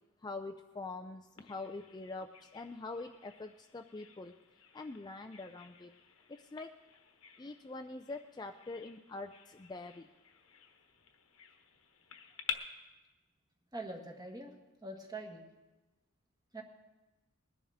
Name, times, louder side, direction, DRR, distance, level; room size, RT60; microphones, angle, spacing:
voice 1, 0.2-4.3 4.7-5.9 6.3-6.8 7.4-10.1, left 3 dB, 20° left, 5 dB, 0.4 m, -44 dB
Bird vocalization bird call bird song, 1.4-12.5, left 8 dB, 70° left, 1.2 m, -50 dB
voice 2, 13.7-14.5 14.8-15.4 16.5-16.6, right 2 dB, 20° right, 1 dB, 1.7 m, -43 dB
21.0 x 10.5 x 3.6 m, 1.1 s
head